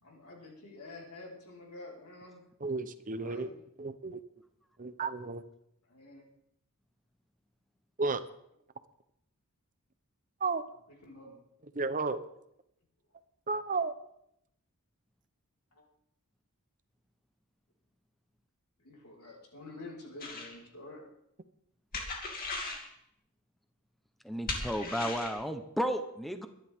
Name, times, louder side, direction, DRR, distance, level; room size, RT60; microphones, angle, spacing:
voice 1, 0.0-2.4 3.2-3.6 5.9-6.2 11.0-11.4 15.7-15.8 18.8-21.1, left 2 dB, 90° left, -2 dB, 4.7 m, -48 dB
voice 2, 2.6-3.5 3.8-4.2 4.8-5.4 8.0-8.2 10.4-10.6 11.7-12.2 13.5-13.9, right 4 dB, 35° right, 12 dB, 0.8 m, -32 dB
sound 1, 20.2-20.5 21.9-22.9 24.5-25.4, left 3 dB, 40° left, 2.6 m, -37 dB
voice 3, 24.2-26.5, equal, ahead, 7 dB, 0.8 m, -33 dB
23.0 x 11.0 x 3.6 m, 0.75 s
head